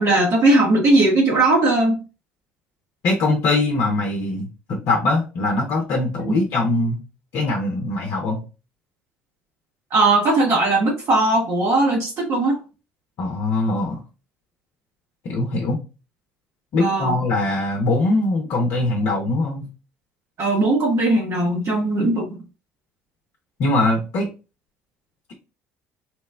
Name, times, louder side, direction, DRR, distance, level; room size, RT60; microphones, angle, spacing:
voice 1, 0.0-2.0 9.9-12.6 16.8-17.1 20.4-22.3, right 2 dB, 45° right, -1 dB, 0.9 m, -18 dB
voice 2, 3.0-7.0 7.3-8.4 13.2-14.0 15.2-15.8 16.7-19.7 23.6-24.3, left 2 dB, 60° left, 1 dB, 0.7 m, -22 dB
2.8 x 2.1 x 3.4 m, 0.32 s
hypercardioid pair, 60°, 6 cm